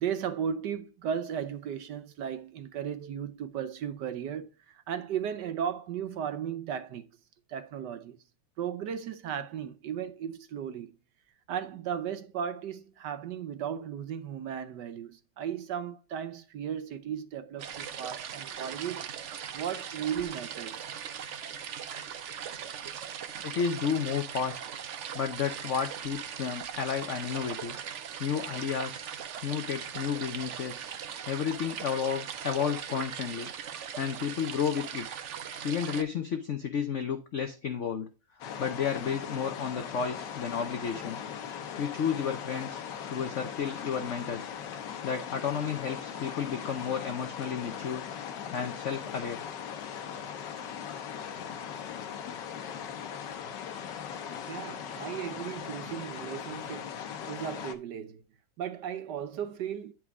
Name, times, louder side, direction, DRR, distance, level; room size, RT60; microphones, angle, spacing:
voice 1, 0.0-7.1 7.5-8.2 8.6-11.0 11.5-19.1 19.5-20.8 54.5-57.0 57.3-58.2 58.6-59.9, right 8 dB, 65° right, 1.2 m, -35 dB
sound 1, 17.6-36.0, right 8 dB, 85° right, 0.6 m, -39 dB
voice 2, 23.4-24.6 25.1-27.8 28.2-29.1 29.4-33.5 34.0-35.2 35.6-38.1 38.6-41.2 41.8-42.8 43.1-44.5 45.0-48.0 48.5-49.4, left 7 dB, 85° left, 0.6 m, -32 dB
sound 2, 38.4-57.8, left 8 dB, 65° left, 1.5 m, -39 dB
9.7 x 4.7 x 3.6 m
omnidirectional pair, 2.2 m